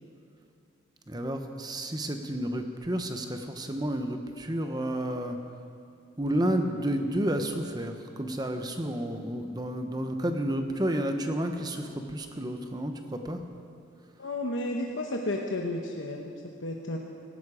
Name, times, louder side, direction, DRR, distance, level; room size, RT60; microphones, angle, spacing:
voice 1, 1.1-5.4 6.2-13.4, right 1 dB, 20° right, 5 dB, 1.0 m, -31 dB
voice 2, 14.2-17.0, left 1 dB, 65° left, 1 dB, 1.0 m, -32 dB
16.5 x 15.5 x 5.0 m, 2.5 s
head